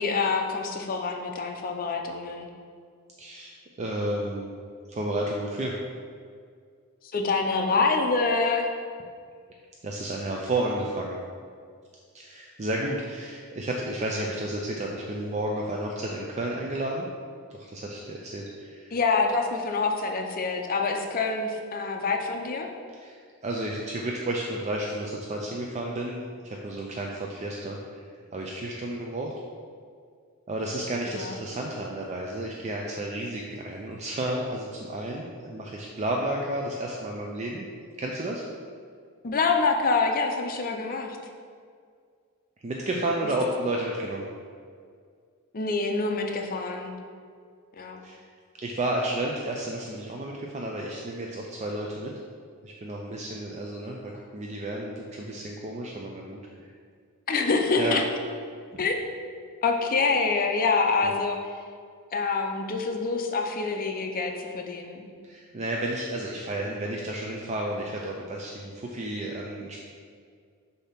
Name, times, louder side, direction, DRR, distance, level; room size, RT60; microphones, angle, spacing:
voice 1, 0.0-2.5 7.1-8.7 18.9-22.7 31.1-31.3 39.2-41.2 45.5-46.9 47.8-48.0 57.3-58.0 58.8-59.1 59.6-61.4 62.1-65.0, left 4 dB, 40° left, 3 dB, 0.6 m, -26 dB
voice 2, 3.2-3.5 3.8-4.5 4.9-5.8 9.8-11.2 12.1-17.1 17.5-18.9 22.9-28.0 28.3-29.3 30.5-37.7 38.0-38.4 42.6-44.3 48.0-48.2 48.6-52.1 52.6-56.7 57.8-58.0 58.7-58.9 61.0-61.1 65.2-69.8, right 1 dB, 30° right, -1 dB, 0.4 m, -32 dB
6.7 x 2.8 x 5.8 m, 2.1 s
head